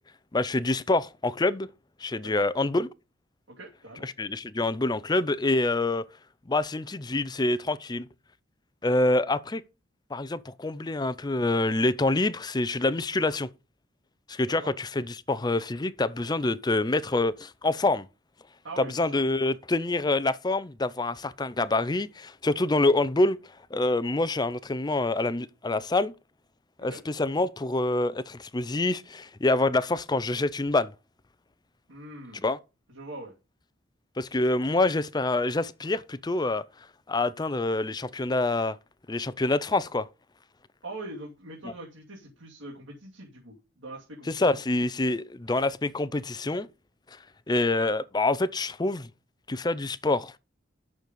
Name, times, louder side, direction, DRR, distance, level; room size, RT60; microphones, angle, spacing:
voice 1, 0.3-1.7 2.0-2.9 4.0-6.0 6.5-8.1 8.8-9.6 10.1-13.5 14.3-18.1 18.8-23.4 23.7-26.1 26.8-30.9 32.4-32.6 34.2-36.6 37.1-38.8 39.1-40.1 41.6-41.7 44.3-46.7 47.5-49.1 49.5-50.4, left 2 dB, 20° left, 0.5 m, -26 dB
voice 2, 3.5-4.0 14.5-14.7 18.6-19.2 26.9-27.0 31.9-32.4 32.9-33.3 40.8-44.5, right 2 dB, 75° right, 2.7 m, -42 dB
9.2 x 6.6 x 5.3 m
head